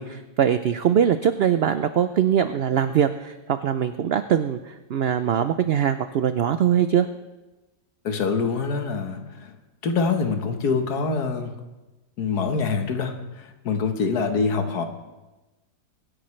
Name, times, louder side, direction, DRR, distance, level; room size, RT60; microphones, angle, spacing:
voice 1, 0.0-7.1, right 9 dB, 90° right, 10 dB, 0.5 m, -22 dB
voice 2, 8.0-9.5 9.8-11.5 12.2-14.9, left 4 dB, 90° left, 6 dB, 1.7 m, -25 dB
23.5 x 10.0 x 3.2 m, 1.1 s
omnidirectional pair, 1.6 m